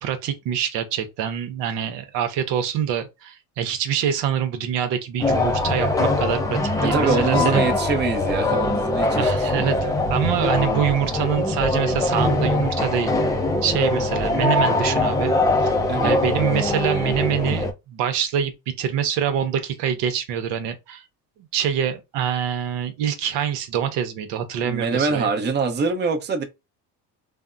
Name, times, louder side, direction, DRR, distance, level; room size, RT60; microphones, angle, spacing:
voice 1, 0.0-7.7 9.2-9.8 10.1-13.1 13.6-15.3 15.6-15.7 16.0-21.0 21.5-25.3, right 9 dB, 70° right, 0.8 m, -25 dB
sound 1, 5.2-17.7, left 2 dB, 10° left, 0.4 m, -22 dB
voice 2, 6.8-10.0 15.9-16.2 24.6-26.4, right 4 dB, 25° right, 0.6 m, -24 dB
3.4 x 2.0 x 2.4 m
supercardioid pair, 100°, 44 cm